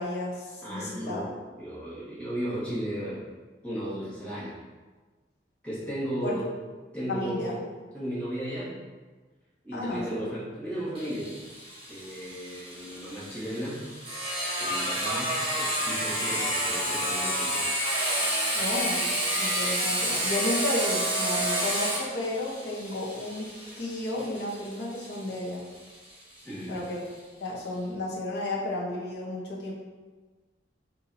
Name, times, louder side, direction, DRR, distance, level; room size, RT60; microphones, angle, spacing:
voice 1, 0.0-1.2 6.2-6.4 7.1-7.6 9.7-10.2 18.5-19.1 19.4-23.5 23.8-25.7 26.7-27.1 27.4-29.7, left 2 dB, 70° left, -4 dB, 1.0 m, -32 dB
voice 2, 0.6-3.2 3.6-4.6 5.6-6.4 6.9-7.6 7.9-8.8 9.6-11.3 11.8-13.8 14.6-17.6 26.4-26.8, equal, 5° left, -11 dB, 1.3 m, -35 dB
Sawing, 11.0-26.4, right 1 dB, 30° right, 1.1 m, -30 dB
5.6 x 2.7 x 2.8 m, 1.3 s
head